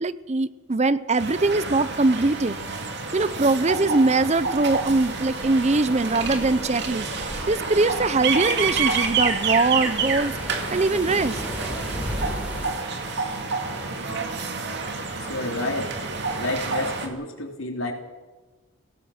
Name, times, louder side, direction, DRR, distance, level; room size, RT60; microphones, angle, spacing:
voice 1, 0.0-2.6 3.1-7.1 7.5-11.4, right 3 dB, 30° right, 16 dB, 0.6 m, -22 dB
sound 1, 1.2-17.1, right 4 dB, 55° right, 2.7 m, -29 dB
sound 2, 4.2-12.7, equal, 5° right, 3.6 m, -37 dB
voice 2, 15.3-15.9 16.4-17.9, left 1 dB, 80° left, 3 dB, 3.4 m, -29 dB
24.0 x 17.5 x 6.5 m, 1.3 s
head